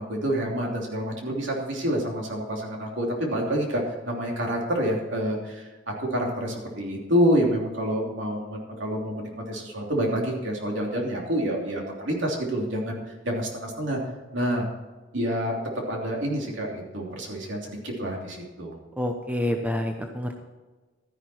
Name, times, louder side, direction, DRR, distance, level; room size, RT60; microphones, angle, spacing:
voice 1, 0.0-13.0 13.2-14.0 14.3-14.7 15.1-15.6 15.9-18.8, equal, 65° right, -1 dB, 3.1 m, -28 dB
voice 2, 19.0-20.4, left 1 dB, 5° right, 4 dB, 0.8 m, -28 dB
13.0 x 11.0 x 4.4 m, 1.3 s
head